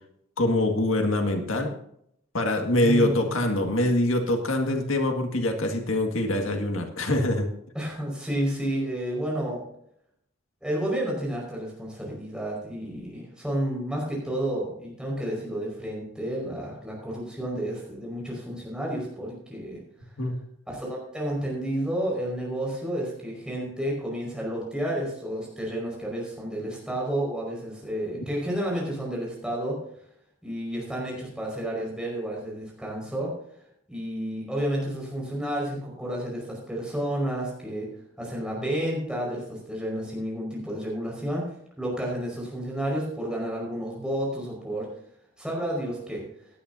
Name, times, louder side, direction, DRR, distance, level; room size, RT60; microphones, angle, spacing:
voice 1, 0.4-1.8 2.3-7.5 20.2-20.3, left 1 dB, 85° left, 4 dB, 1.9 m, -24 dB
voice 2, 2.8-3.3 7.7-9.6 10.6-19.8 20.7-29.8 30.4-33.3 33.9-37.9 38.2-44.9 45.4-46.2, right 1 dB, 5° right, -3 dB, 5.1 m, -31 dB
17.0 x 11.0 x 2.7 m, 0.72 s
head